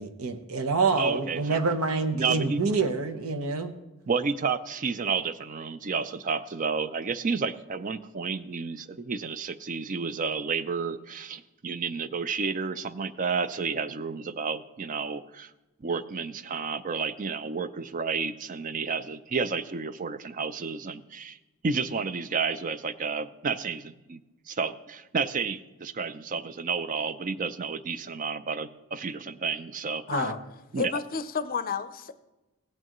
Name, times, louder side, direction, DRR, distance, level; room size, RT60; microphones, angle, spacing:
voice 1, 0.0-3.7 30.1-30.3, right 4 dB, 75° right, 7 dB, 1.0 m, -27 dB
voice 2, 1.0-1.6 2.1-2.6 4.1-15.5 15.8-21.4 21.6-24.2 24.5-30.0 30.7-30.9, right 5 dB, 35° right, 13 dB, 0.4 m, -31 dB
voice 3, 30.1-30.4 30.8-32.1, left 6 dB, 40° left, 12 dB, 0.5 m, -30 dB
17.0 x 8.8 x 3.0 m, 1.0 s
head